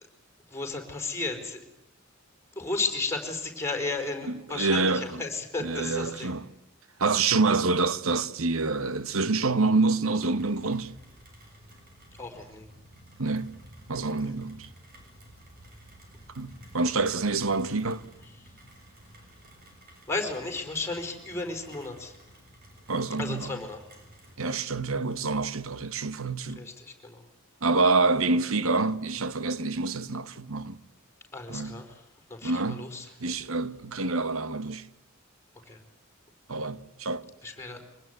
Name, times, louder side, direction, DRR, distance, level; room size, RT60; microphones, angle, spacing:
voice 1, 0.5-1.6 2.5-6.3 12.2-12.7 14.2-14.3 20.1-22.2 23.2-23.9 26.5-27.2 31.3-33.1 35.7-35.8 37.4-37.8, left 3 dB, 15° left, 4.6 m, -34 dB
voice 2, 4.3-5.2 5.6-6.4 7.0-10.9 13.2-13.6 13.9-14.7 16.4-18.0 22.9-23.5 24.4-26.6 27.6-30.8 31.5-31.8 32.4-32.9 33.2-34.9 36.5-37.3, right 3 dB, 85° right, 1.2 m, -27 dB
Rain, 10.2-24.4, equal, 45° right, 7.7 m, -52 dB
24.5 x 20.0 x 9.3 m
head